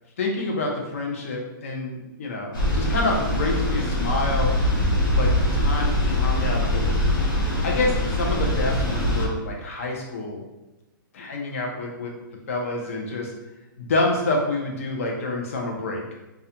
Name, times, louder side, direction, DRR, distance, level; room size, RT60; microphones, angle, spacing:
voice 1, 0.2-4.5 5.1-6.9 7.1-10.4 11.1-12.1 12.5-13.3 13.8-16.0, left 2 dB, 40° left, 0 dB, 0.4 m, -28 dB
sound 1, 2.5-9.3, left 1 dB, 70° left, 0.9 m, -23 dB
2.4 x 2.1 x 2.7 m, 0.99 s
hypercardioid pair, 180°, 11 cm